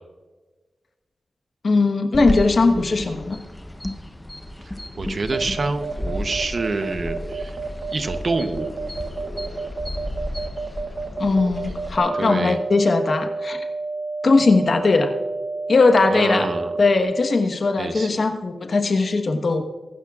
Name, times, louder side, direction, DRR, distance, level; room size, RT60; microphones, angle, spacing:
voice 1, 1.6-3.4 11.2-13.6 14.2-15.1 15.7-16.5 16.8-19.6, left 3 dB, 45° left, 6 dB, 1.1 m, -19 dB
sound 1, 2.1-12.0, left 1 dB, 10° left, 0.8 m, -33 dB
voice 2, 5.0-7.6 7.9-8.8 12.1-12.6 16.1-16.7 17.8-18.1, right 3 dB, 40° right, 8 dB, 0.8 m, -26 dB
trauma and flatlining, 5.3-17.0, right 3 dB, 85° right, 1.2 m, -30 dB
23.0 x 12.0 x 2.4 m, 1.3 s
wide cardioid pair, 160°, 0 cm